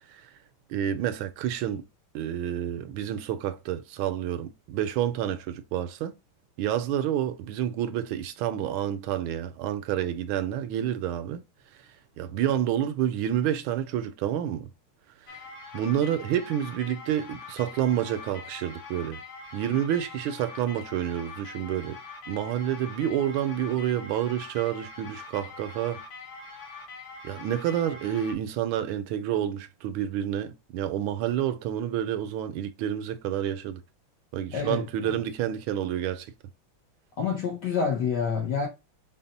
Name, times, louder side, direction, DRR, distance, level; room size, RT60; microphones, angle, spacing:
voice 1, 0.7-1.8 2.1-6.1 6.6-11.4 12.2-14.7 15.7-19.2 19.5-22.0 22.3-26.0 27.2-33.8 34.3-36.3, right 10 dB, 75° right, 1.3 m, -29 dB
sound 1, 15.3-28.3, left 4 dB, 80° left, 2.0 m, -43 dB
voice 2, 34.5-35.1 37.2-38.7, left 6 dB, 65° left, 1.1 m, -28 dB
4.1 x 2.1 x 3.9 m
omnidirectional pair, 2.4 m